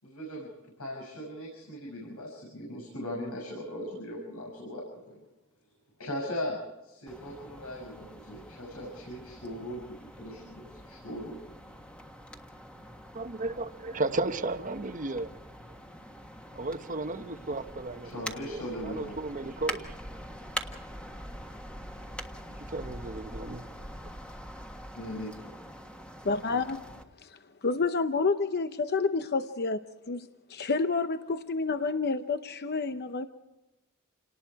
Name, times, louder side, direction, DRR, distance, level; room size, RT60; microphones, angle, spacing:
voice 1, 0.0-5.2 6.0-11.4 18.0-19.2 24.9-25.5, equal, 85° left, 6.6 m, -39 dB
sound 1, 7.1-27.0, equal, 5° left, 1.5 m, -44 dB
voice 2, 13.1-15.3 16.5-19.9 22.7-23.6, right 2 dB, 35° right, 1.0 m, -34 dB
voice 3, 26.2-26.8 27.2-33.3, left 4 dB, 50° left, 0.8 m, -29 dB
29.0 x 19.0 x 4.8 m
head